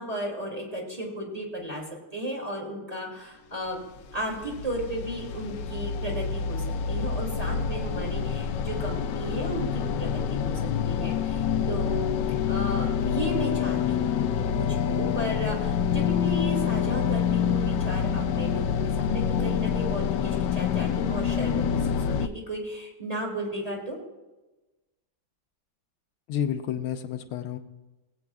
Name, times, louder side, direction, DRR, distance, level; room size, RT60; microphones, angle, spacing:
voice 1, 0.0-1.9 2.1-3.8 4.1-12.1 12.4-24.0, right 1 dB, 15° right, -2 dB, 2.5 m, -34 dB
sound 1, 3.8-22.3, left 7 dB, 75° left, 1.1 m, -27 dB
voice 2, 26.3-27.6, left 9 dB, 90° left, 6 dB, 1.6 m, -30 dB
19.0 x 8.6 x 2.4 m, 1.1 s
omnidirectional pair, 2.3 m